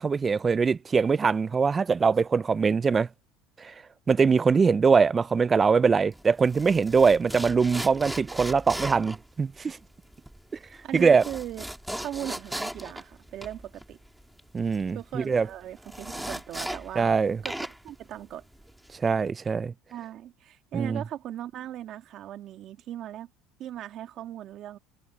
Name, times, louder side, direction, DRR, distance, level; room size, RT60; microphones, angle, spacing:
voice 1, 0.0-3.1 3.6-3.7 4.1-9.8 10.9-11.2 14.5-15.5 17.0-17.4 18.9-19.7 20.7-21.0, right 5 dB, 20° right, 0.3 m, -22 dB
sound 1, 6.1-17.2 17.4-19.0, right 1 dB, 5° right, 2.2 m, -38 dB
voice 2, 10.8-11.7 12.0-14.0 14.9-17.1 17.4-17.5 17.8-18.4 19.9-23.3 23.6-24.8, right 12 dB, 50° right, 2.1 m, -38 dB
supercardioid pair, 125°, 0 cm